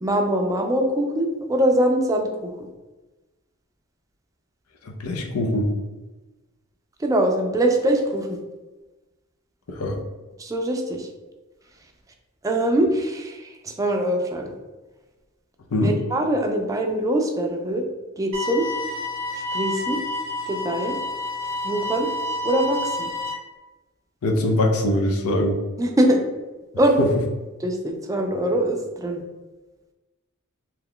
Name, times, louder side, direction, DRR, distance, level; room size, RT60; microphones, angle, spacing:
voice 1, 0.0-2.5 7.0-8.4 10.4-11.0 12.4-13.3 13.8-14.5 15.8-17.8 18.2-18.7 19.5-20.0 20.5-21.0 21.6-22.1 22.4-23.1 25.8-26.2 26.8-27.1 27.6-29.2, right 1 dB, 15° right, 2 dB, 0.4 m, -22 dB
voice 2, 4.8-5.7 9.7-10.0 15.7-16.0 24.2-25.6 27.0-27.1, left 1 dB, 90° left, 1 dB, 0.5 m, -22 dB
sound 1, 18.3-23.3, left 1 dB, 65° right, 0.6 m, -29 dB
2.9 x 2.3 x 3.6 m, 1.1 s
head